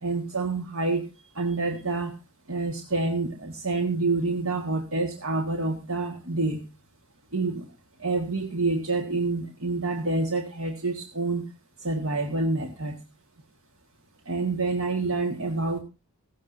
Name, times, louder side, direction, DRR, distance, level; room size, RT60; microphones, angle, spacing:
voice 1, 0.0-1.0 1.4-2.1 2.5-6.6 7.3-7.7 8.0-11.4 11.8-13.0 14.3-15.8, right 3 dB, 90° right, 4 dB, 1.8 m, -27 dB
17.5 x 14.0 x 2.7 m, 0.30 s
head